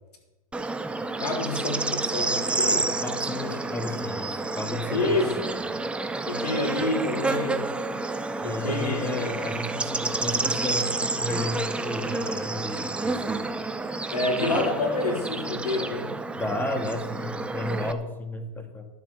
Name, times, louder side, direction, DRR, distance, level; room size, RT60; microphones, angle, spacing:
Bird / Insect, 0.5-17.9, right 3 dB, 5° right, 0.5 m, -29 dB
voice 1, 1.2-2.9 4.9-5.4 6.3-7.7 8.4-9.3 14.1-16.1, left 2 dB, 85° left, 2 dB, 3.6 m, -28 dB
voice 2, 3.0-5.6 8.4-13.6 16.3-18.9, left 1 dB, 10° left, 6 dB, 1.6 m, -33 dB
12.0 x 7.3 x 7.0 m, 1.0 s
hypercardioid pair, 130°, 20 cm